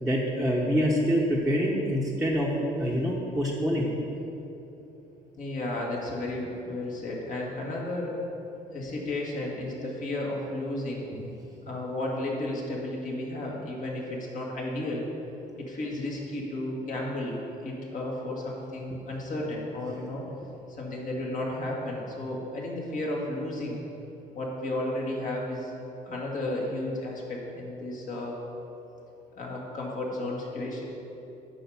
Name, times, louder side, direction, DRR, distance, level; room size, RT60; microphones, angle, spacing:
voice 1, 0.0-3.9 11.1-11.3, equal, ahead, -6 dB, 1.1 m, -26 dB
voice 2, 5.4-8.1 8.7-11.1 11.6-15.1 15.6-20.2 20.8-23.8 24.3-25.7 26.1-28.4 29.4-30.8, left 1 dB, 50° left, -3 dB, 2.2 m, -33 dB
9.0 x 5.1 x 7.1 m, 2.9 s
cardioid pair, 110°, 17 cm